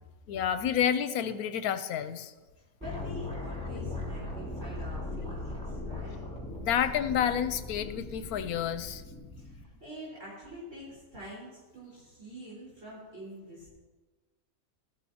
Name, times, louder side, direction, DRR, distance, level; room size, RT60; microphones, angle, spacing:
voice 1, 0.3-2.3 6.6-9.0, left 9 dB, 85° left, 11 dB, 1.1 m, -29 dB
sound 1, 2.8-9.6, left 2 dB, 5° left, 2.4 m, -39 dB
voice 2, 2.8-6.3 9.4-13.7, equal, 55° right, -8 dB, 4.8 m, -45 dB
17.0 x 13.0 x 2.8 m, 1.3 s
omnidirectional pair, 1.5 m